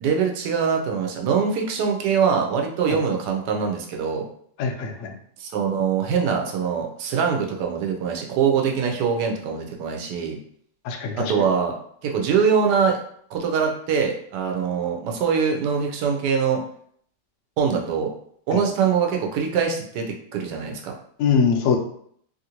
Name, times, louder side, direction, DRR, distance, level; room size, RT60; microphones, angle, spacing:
voice 1, 0.0-4.3 5.4-10.4 11.2-11.8 12.0-13.0 13.3-16.6 17.6-18.1 18.5-20.9, right 6 dB, 80° right, 2 dB, 1.2 m, -23 dB
voice 2, 4.6-5.1 10.8-11.3 18.5-18.6 21.2-21.8, left 6 dB, 75° left, 3 dB, 0.7 m, -22 dB
3.0 x 2.5 x 2.8 m, 0.64 s
omnidirectional pair, 1.8 m